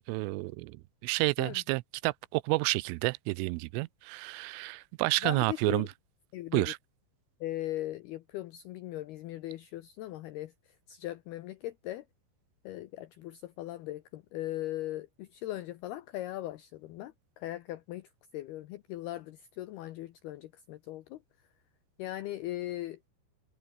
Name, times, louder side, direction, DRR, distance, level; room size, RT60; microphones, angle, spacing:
voice 1, 0.1-5.9 6.5-6.8, right 23 dB, 85° right, 3.1 m, -30 dB
voice 2, 5.2-5.9 6.3-6.7 7.4-10.5 10.9-12.0 12.6-21.2 22.0-23.0, left 15 dB, 90° left, 2.2 m, -39 dB
omnidirectional pair, 5.7 m